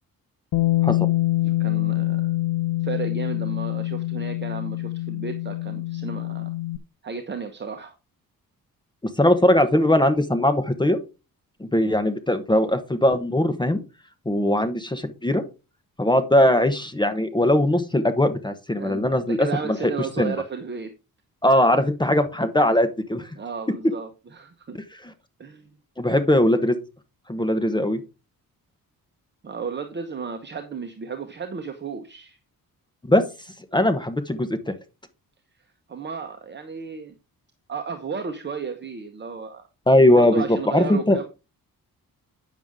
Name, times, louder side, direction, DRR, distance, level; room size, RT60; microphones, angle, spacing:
Bass guitar, 0.5-6.8, left 17 dB, 75° left, 0.7 m, -25 dB
voice 1, 1.4-2.3 2.8-6.5 7.0-7.9 18.8-20.9 23.3-24.8 25.4-25.8 29.4-32.4 35.9-37.1 37.7-39.7 40.1-41.2, right 5 dB, 30° right, 6 dB, 1.1 m, -33 dB
voice 2, 9.2-11.0 11.6-13.8 14.3-15.4 16.0-19.8 20.2-20.3 21.4-23.3 25.0-25.1 26.0-26.8 27.3-28.0 33.1-33.2 33.7-34.7 39.9-41.2, left 1 dB, 10° left, 9 dB, 1.0 m, -20 dB
9.3 x 7.0 x 3.6 m, 0.28 s
wide cardioid pair, 150°, 36 cm